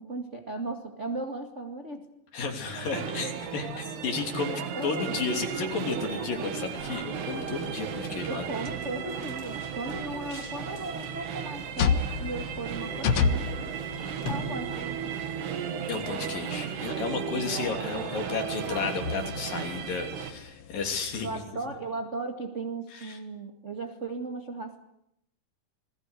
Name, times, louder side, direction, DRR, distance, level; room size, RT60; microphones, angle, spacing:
voice 1, 0.0-2.0 4.7-5.3 8.3-13.5 14.3-15.1 17.3-17.8 21.2-24.8, right 2 dB, 30° right, 3 dB, 1.4 m, -36 dB
voice 2, 2.3-8.5 15.9-21.3 22.9-23.2, left 4 dB, 60° left, 4 dB, 4.7 m, -33 dB
sound 1, 2.5-20.3, right 8 dB, 80° right, 4.0 m, -35 dB
sound 2, 4.9-15.2, left 2 dB, 30° left, 7.0 m, -46 dB
sound 3, 6.7-21.4, left 5 dB, 75° left, 1.4 m, -35 dB
29.0 x 21.5 x 8.4 m, 0.78 s
omnidirectional pair, 4.6 m